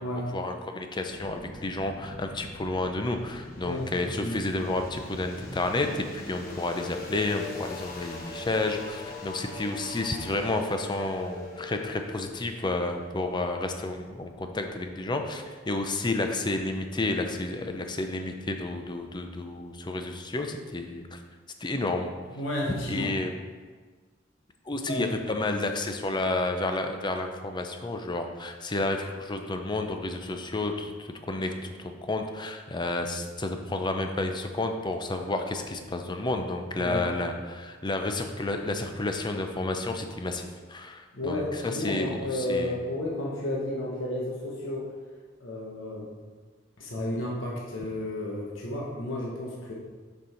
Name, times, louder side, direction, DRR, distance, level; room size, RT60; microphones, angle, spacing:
voice 1, 0.3-21.2 21.6-22.1 22.8-23.3 24.7-42.7, left 2 dB, 25° left, 5 dB, 0.6 m, -31 dB
sound 1, 1.1-13.9, left 3 dB, 50° left, 1.1 m, -42 dB
voice 2, 22.3-23.1 24.9-25.1 36.8-37.1 41.1-44.9 45.4-46.1 46.8-49.7, left 1 dB, 85° left, -3 dB, 1.2 m, -32 dB
6.5 x 5.5 x 4.4 m, 1.5 s
head